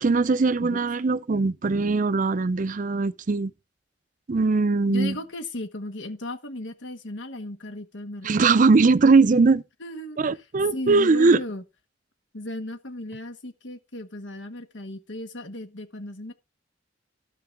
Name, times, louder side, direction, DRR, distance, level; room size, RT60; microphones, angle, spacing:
voice 1, 0.0-3.5 4.3-5.2 8.2-9.6 10.2-11.4, right 4 dB, 45° right, 0.5 m, -20 dB
voice 2, 4.9-8.6 9.8-10.2 10.7-11.6 12.3-16.3, left 1 dB, 80° left, 1.5 m, -36 dB
13.0 x 5.8 x 4.7 m
head